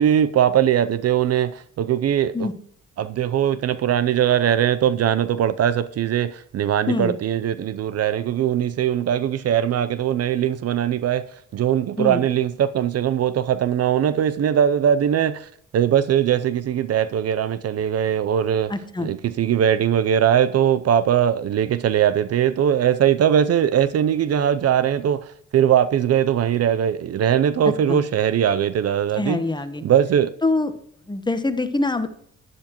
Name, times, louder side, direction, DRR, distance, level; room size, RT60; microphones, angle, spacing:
voice 1, 0.0-2.5 3.0-11.2 11.5-18.7 19.0-29.4 29.8-30.3, right 9 dB, 55° right, 0.6 m, -20 dB
voice 2, 18.7-19.1 27.6-28.0 29.1-29.8 30.4-30.7 31.1-32.1, left 2 dB, 15° left, 1.0 m, -24 dB
11.5 x 10.0 x 3.0 m
cardioid pair, 90°, 30 cm